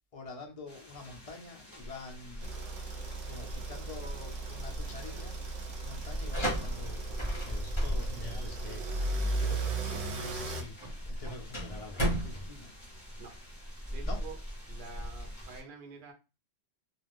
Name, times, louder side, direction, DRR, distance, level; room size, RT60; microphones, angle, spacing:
voice 1, 0.1-12.7 14.0-14.2, left 3 dB, 60° left, 0.3 m, -47 dB
sound 1, 0.7-15.6, equal, 15° right, 0.9 m, -41 dB
sound 2, 2.4-10.6, right 2 dB, 75° right, 1.0 m, -36 dB
sound 3, 6.2-13.7, equal, 25° left, 0.9 m, -37 dB
voice 2, 13.9-14.4 14.7-16.1, right 4 dB, 50° right, 0.8 m, -47 dB
2.3 x 2.3 x 3.4 m
omnidirectional pair, 1.3 m